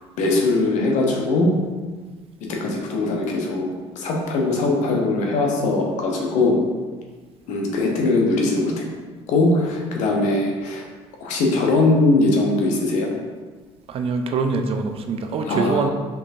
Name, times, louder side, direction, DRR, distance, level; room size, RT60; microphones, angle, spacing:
voice 1, 0.2-1.5 2.6-6.6 7.5-8.9 9.3-10.8 11.2-13.1 15.4-15.9, left 2 dB, 70° left, 0 dB, 0.9 m, -21 dB
voice 2, 13.9-15.9, right 4 dB, 45° right, 6 dB, 0.4 m, -24 dB
4.5 x 3.1 x 2.7 m, 1.4 s
supercardioid pair, 75°, 13 cm